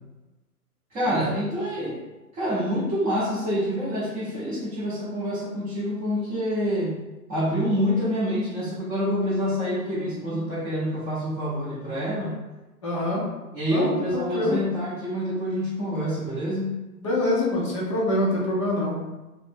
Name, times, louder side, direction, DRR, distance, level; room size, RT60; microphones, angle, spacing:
voice 1, 0.9-2.0 2.3-7.0 7.3-12.4 13.5-16.8, equal, 20° right, -8 dB, 0.7 m, -27 dB
voice 2, 9.9-10.4 12.8-13.2 13.7-14.6 17.0-19.0, left 1 dB, 20° left, -5 dB, 0.4 m, -26 dB
2.5 x 2.0 x 3.6 m, 1.1 s
hypercardioid pair, 130°, 47 cm